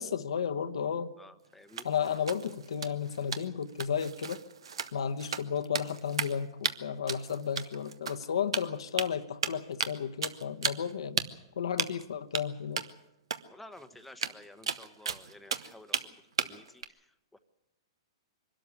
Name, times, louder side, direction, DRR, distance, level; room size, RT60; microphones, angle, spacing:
voice 1, 0.0-1.1 1.8-4.4 4.9-11.2 11.6-12.8, left 7 dB, 80° left, 8 dB, 1.1 m, -33 dB
voice 2, 1.2-1.9 13.5-16.1 16.4-16.8 17.3-17.4, left 1 dB, 5° left, 7 dB, 0.9 m, -52 dB
sound 1, 1.7-6.4 6.6-6.7 7.1-8.3 8.5-9.1 9.4-10.0 10.2-10.9 11.2-11.3 11.8-12.0 12.3-12.4 12.8-12.9 13.3-13.4 13.7-13.8 14.1-16.0 16.4-16.8, right 6 dB, 85° right, 1.3 m, -34 dB
23.5 x 13.0 x 9.7 m, 0.90 s
hypercardioid pair, 140°, 3 cm